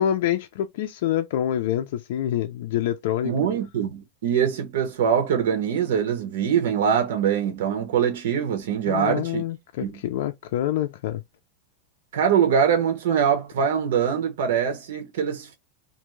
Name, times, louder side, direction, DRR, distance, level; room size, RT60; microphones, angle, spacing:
voice 1, 0.0-3.3 8.9-11.2, left 11 dB, 65° left, 0.4 m, -26 dB
voice 2, 3.2-9.4 9.8-9.9 12.1-15.5, right 8 dB, 85° right, 0.8 m, -23 dB
2.5 x 2.3 x 3.0 m
supercardioid pair, 165°, 0 cm